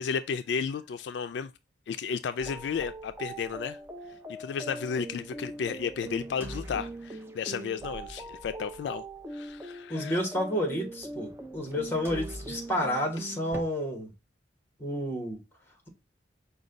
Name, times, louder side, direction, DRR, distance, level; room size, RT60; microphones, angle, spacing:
voice 1, 0.0-1.5 1.9-3.8 4.4-9.0 9.3-10.2, left 6 dB, 70° left, 0.3 m, -33 dB
sound 1, 2.4-13.6, right 1 dB, 15° right, 0.5 m, -41 dB
voice 2, 9.9-14.1 14.8-15.4, equal, 15° left, 1.2 m, -30 dB
5.2 x 2.3 x 3.8 m
head